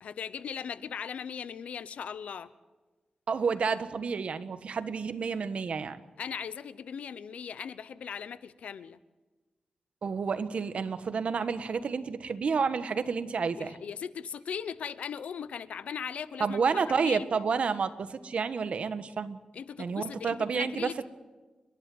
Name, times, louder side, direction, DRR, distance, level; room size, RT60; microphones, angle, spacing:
voice 1, 0.0-2.5 6.2-9.0 13.6-16.6 16.9-17.3 19.5-21.0, left 7 dB, 90° left, 16 dB, 0.9 m, -38 dB
voice 2, 3.3-6.0 10.0-13.7 16.4-19.4 19.8-21.0, right 5 dB, 70° right, 11 dB, 1.4 m, -30 dB
30.0 x 11.5 x 7.9 m, 1.2 s
cardioid pair, 75°, 2 cm